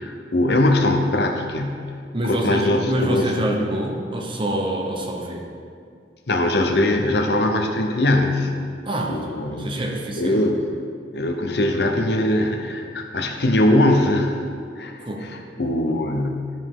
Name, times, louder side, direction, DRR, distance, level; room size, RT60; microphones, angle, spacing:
voice 1, 0.0-1.8 2.2-3.3 6.3-8.5 9.1-9.8 10.2-10.6 11.1-14.4 14.8-16.5, left 1 dB, 65° left, 3 dB, 0.8 m, -21 dB
voice 2, 2.1-5.5 8.8-10.5 15.1-15.3, right 1 dB, 30° right, 1 dB, 0.9 m, -26 dB
12.0 x 5.2 x 3.7 m, 2.2 s
head